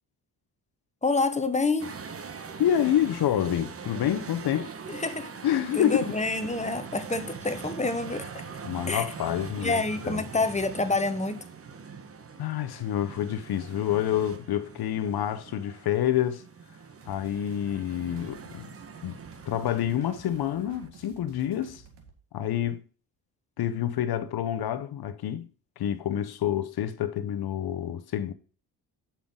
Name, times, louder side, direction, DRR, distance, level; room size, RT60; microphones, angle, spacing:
voice 1, 1.0-2.0 4.9-5.3 5.7-8.4 8.9-9.1 9.6-11.4, left 3 dB, 15° left, 1.1 m, -28 dB
sound 1, 1.8-20.9, right 5 dB, 35° right, 1.2 m, -43 dB
voice 2, 2.6-4.7 5.4-6.1 6.4-6.5 8.6-10.2 12.4-16.4 17.1-18.7 19.0-19.1 19.5-21.8 22.3-22.8 23.6-25.5 25.8-28.3, left 11 dB, 65° left, 0.9 m, -28 dB
sound 2, 17.0-22.2, right 5 dB, 85° right, 1.9 m, -53 dB
8.6 x 5.8 x 3.8 m
cardioid pair, 90°, 40 cm